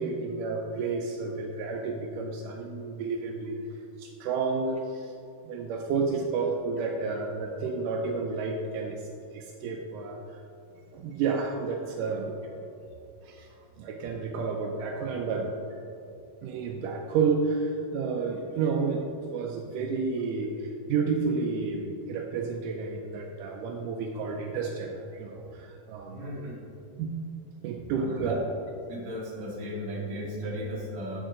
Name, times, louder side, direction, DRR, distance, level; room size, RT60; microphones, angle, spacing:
voice 1, 0.0-3.6 4.0-5.1 5.5-9.0 9.3-10.4 10.9-12.3 13.2-13.5 13.8-15.5 16.4-19.1 19.3-26.2 27.0-27.2 27.6-28.4, right 4 dB, 85° right, 1 dB, 1.9 m, -31 dB
voice 2, 26.0-26.5 28.0-28.4 28.9-31.2, equal, 45° right, -5 dB, 2.4 m, -36 dB
10.0 x 8.0 x 3.8 m, 2.7 s
omnidirectional pair, 4.4 m